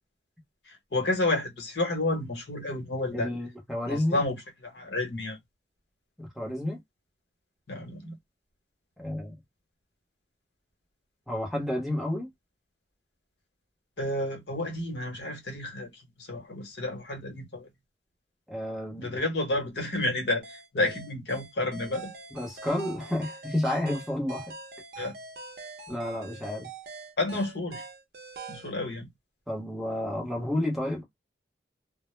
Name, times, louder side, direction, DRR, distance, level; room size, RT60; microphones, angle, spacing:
voice 1, 0.7-3.3 3.8-5.4 7.7-8.1 14.0-17.7 19.0-22.1 25.0-25.1 27.2-27.8 28.5-29.1, left 2 dB, 80° left, 0.9 m, -30 dB
voice 2, 3.1-4.2 6.2-6.8 9.0-9.3 11.3-12.3 18.5-19.2 22.3-24.5 25.0-25.1 25.9-26.7 29.5-31.0, left 1 dB, ahead, 0.7 m, -31 dB
sound 1, 20.4-28.7, right 3 dB, 60° right, 0.5 m, -44 dB
2.0 x 2.0 x 3.0 m
head